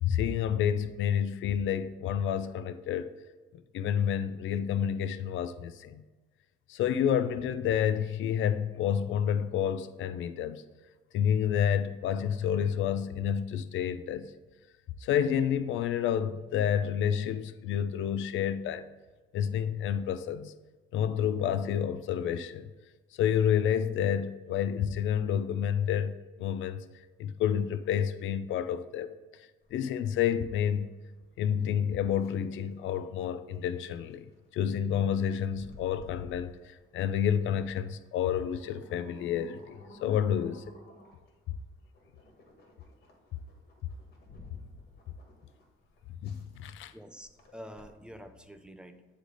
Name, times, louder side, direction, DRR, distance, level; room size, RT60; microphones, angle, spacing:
voice 1, 0.0-3.1 3.7-6.0 6.7-10.6 11.1-14.3 15.0-18.9 19.3-20.5 20.9-22.7 23.2-26.1 26.4-26.9 27.2-29.1 29.7-30.9 31.4-40.6 46.2-46.9, left 9 dB, 80° left, 0.4 m, -29 dB
sound 1, 29.6-48.4, left 2 dB, 50° left, 1.9 m, -55 dB
voice 2, 46.8-49.1, equal, 5° right, 0.6 m, -48 dB
9.8 x 3.3 x 3.9 m
cardioid pair, 90°, 20 cm